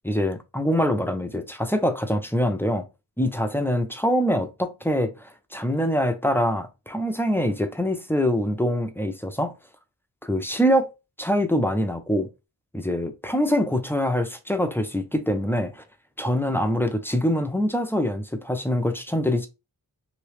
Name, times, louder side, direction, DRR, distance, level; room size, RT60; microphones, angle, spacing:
voice 1, 0.0-2.9 3.2-9.5 10.2-10.9 11.2-12.3 12.7-15.8 16.2-19.5, equal, 5° left, 0.4 m, -24 dB
3.0 x 2.7 x 3.2 m
wide cardioid pair, 110°, 40 cm